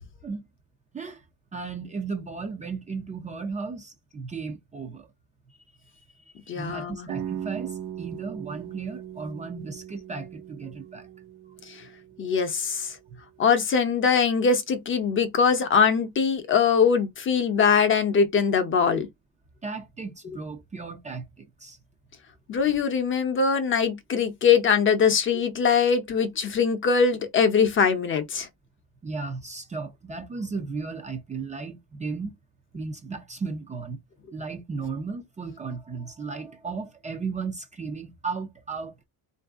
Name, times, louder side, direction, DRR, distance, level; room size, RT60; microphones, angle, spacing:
voice 1, 0.9-1.2 1.5-5.1 6.6-11.1 13.1-13.2 19.6-21.8 29.0-32.4 32.7-34.0 34.3-39.0, right 4 dB, 20° right, 0.5 m, -35 dB
voice 2, 6.5-7.1 11.7-11.8 12.2-13.0 13.4-19.1 22.5-28.5, left 6 dB, 30° left, 0.7 m, -22 dB
sound 1, 7.1-12.9, right 10 dB, 75° right, 1.0 m, -39 dB
3.8 x 2.6 x 3.5 m
cardioid pair, 170°, 38 cm